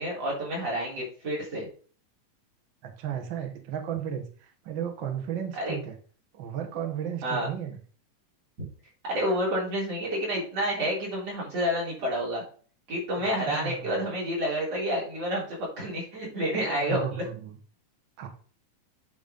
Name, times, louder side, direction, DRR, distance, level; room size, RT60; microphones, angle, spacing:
voice 1, 0.0-1.7 5.5-5.8 7.2-7.5 9.1-12.4 12.9-17.2, equal, 45° right, -4 dB, 4.4 m, -29 dB
voice 2, 2.8-6.0 6.3-7.8 13.2-14.0 16.5-17.6 18.2-18.3, right 9 dB, 80° right, 4 dB, 1.0 m, -34 dB
9.1 x 3.9 x 5.2 m, 0.42 s
omnidirectional pair, 3.9 m